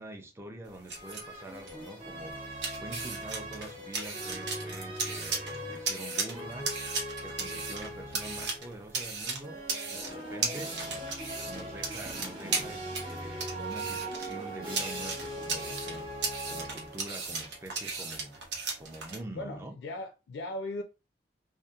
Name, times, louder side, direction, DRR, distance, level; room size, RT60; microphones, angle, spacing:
voice 1, 0.0-2.4 2.8-6.7 7.2-9.6 9.9-10.8 11.5-16.2 16.5-18.4 18.8-19.8, right 1 dB, 15° right, 0.4 m, -45 dB
sound 1, 0.6-19.2, right 4 dB, 90° right, 0.7 m, -37 dB
sound 2, 0.9-8.8 9.4-17.3, right 1 dB, 35° right, 0.9 m, -40 dB
voice 2, 19.3-20.8, left 1 dB, 85° left, 0.3 m, -38 dB
2.7 x 2.1 x 2.3 m
head